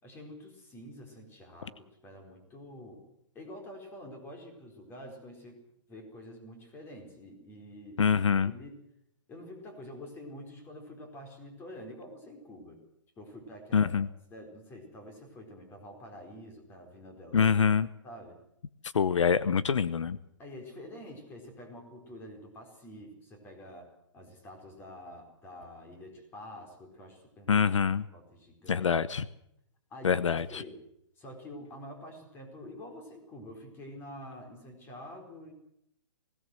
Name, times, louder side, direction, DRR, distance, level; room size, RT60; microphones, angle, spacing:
voice 1, 0.0-3.1 3.3-8.0 8.4-8.8 9.3-12.8 13.2-14.0 14.3-17.5 18.0-18.4 20.4-27.6 28.1-29.0 29.9-30.8 31.2-35.5, left 1 dB, 15° left, 4 dB, 4.5 m, -47 dB
voice 2, 8.0-8.5 13.7-14.1 17.3-17.9 18.9-20.2 27.5-28.0 28.7-29.2 30.0-30.6, left 6 dB, 80° left, 16 dB, 1.0 m, -25 dB
20.0 x 18.0 x 7.8 m, 0.75 s
hypercardioid pair, 155°, 16 cm